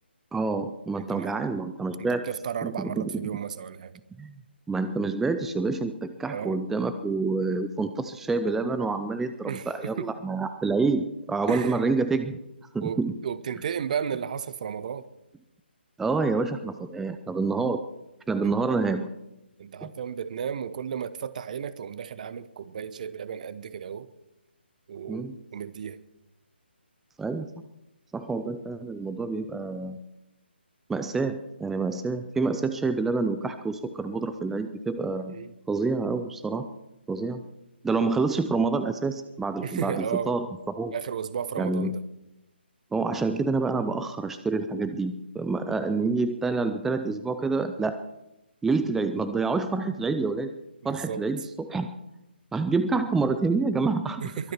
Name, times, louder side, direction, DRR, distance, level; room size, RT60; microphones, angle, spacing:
voice 1, 0.3-2.2 2.6-3.3 4.2-4.4 4.7-12.4 12.7-13.1 16.0-17.8 18.3-19.1 19.8-19.9 25.1-25.4 27.2-27.5 28.1-30.0 30.9-35.3 35.7-36.7 37.1-37.4 37.8-40.5 40.8-40.9 41.6-41.9 42.9-48.0 48.6-50.5 50.8-51.9 52.5-54.3, right 3 dB, 5° right, 10 dB, 0.5 m, -27 dB
voice 2, 1.0-1.3 2.0-4.0 6.3-6.6 9.5-10.1 11.5-11.8 12.8-15.1 18.4-18.5 19.6-24.1 24.9-26.0 35.3-35.5 39.6-40.3 40.9-42.0 50.8-51.3 54.2-54.5, right 7 dB, 40° right, 17 dB, 0.9 m, -34 dB
22.5 x 9.4 x 5.8 m, 0.90 s
figure-of-eight pair, 150°, 6 cm